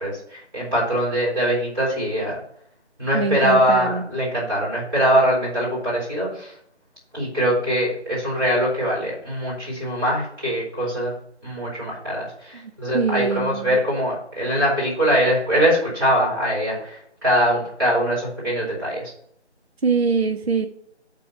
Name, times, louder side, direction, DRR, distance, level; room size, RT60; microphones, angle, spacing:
voice 1, 0.0-2.4 3.0-6.5 7.1-11.1 11.4-19.1, equal, 20° right, -8 dB, 3.8 m, -22 dB
voice 2, 3.1-4.0 12.5-13.8 19.8-20.7, right 5 dB, 60° right, 6 dB, 0.8 m, -24 dB
8.7 x 4.0 x 5.9 m, 0.67 s
figure-of-eight pair, 175°, 35 cm